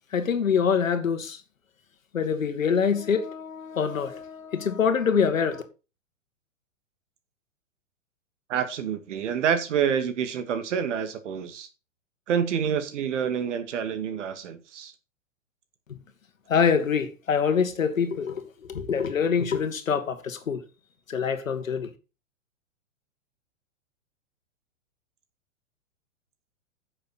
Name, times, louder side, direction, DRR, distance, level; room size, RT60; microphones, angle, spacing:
voice 1, 0.1-1.4 2.1-5.6 15.9-16.0 16.5-20.6 21.1-21.9, left 6 dB, 85° left, 1.9 m, -25 dB
voice 2, 8.5-11.7 12.3-14.9, right 8 dB, 65° right, 2.0 m, -27 dB
10.0 x 6.6 x 4.3 m
hypercardioid pair, 115°, 39 cm